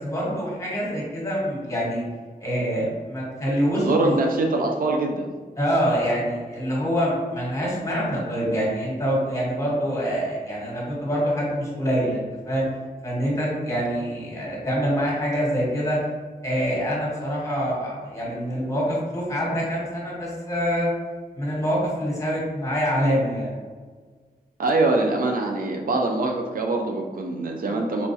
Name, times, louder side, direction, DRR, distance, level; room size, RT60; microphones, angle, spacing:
voice 1, 0.0-2.0 2.4-4.2 5.6-12.7 13.0-16.0 16.4-20.9 21.3-23.5, equal, 20° left, -5 dB, 1.2 m, -25 dB
voice 2, 3.8-5.3 24.6-28.1, right 2 dB, 65° right, 1 dB, 0.4 m, -23 dB
4.2 x 2.3 x 2.7 m, 1.5 s
wide cardioid pair, 115°, 16 cm